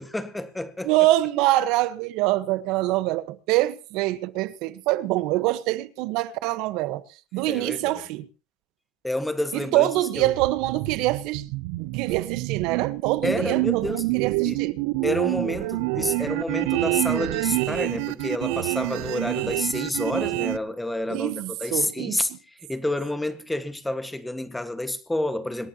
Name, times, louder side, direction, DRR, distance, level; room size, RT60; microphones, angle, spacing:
voice 1, 0.0-0.9 7.5-8.0 9.0-9.9 10.2-10.4 13.2-14.1 14.4-14.6 15.0-22.3 22.7-25.7, left 1 dB, 5° left, 1.6 m, -29 dB
voice 2, 0.8-7.0 7.3-8.3 9.7-11.4 11.8-14.8 21.1-22.2, right 17 dB, 65° right, 1.2 m, -25 dB
sound 1, 10.2-20.6, right 22 dB, 85° right, 0.6 m, -27 dB
26.0 x 11.5 x 2.9 m
cardioid pair, 135°, 0 cm